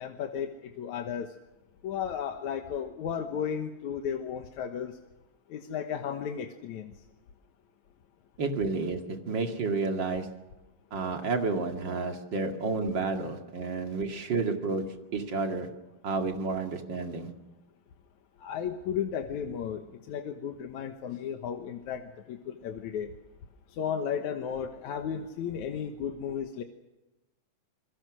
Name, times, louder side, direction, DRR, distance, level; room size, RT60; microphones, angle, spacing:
voice 1, 0.0-1.3 1.8-5.0 5.5-6.9 18.4-23.1 23.7-26.6, left 8 dB, 80° left, 4 dB, 2.7 m, -34 dB
voice 2, 8.4-10.4 10.9-15.7 16.0-17.3, right 4 dB, 40° right, 4 dB, 2.7 m, -31 dB
27.5 x 22.5 x 6.3 m, 1.0 s
omnidirectional pair, 3.3 m